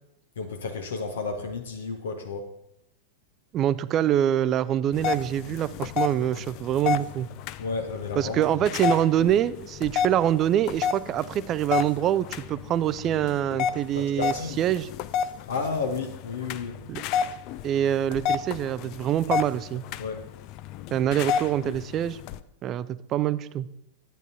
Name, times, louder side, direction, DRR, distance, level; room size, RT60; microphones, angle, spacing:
voice 1, 0.4-2.5 7.6-8.5 14.0-14.6 15.5-16.8 20.0-20.2, left 4 dB, 65° left, 5 dB, 0.9 m, -32 dB
voice 2, 3.5-7.3 8.2-14.9 16.9-17.0 17.6-19.8 20.9-22.2 22.6-23.7, right 11 dB, 30° right, 16 dB, 0.4 m, -25 dB
sound 1, 4.9-22.4, left 7 dB, 40° left, 0.4 m, -31 dB
12.0 x 9.1 x 2.8 m, 0.83 s
figure-of-eight pair, 90°, 0 cm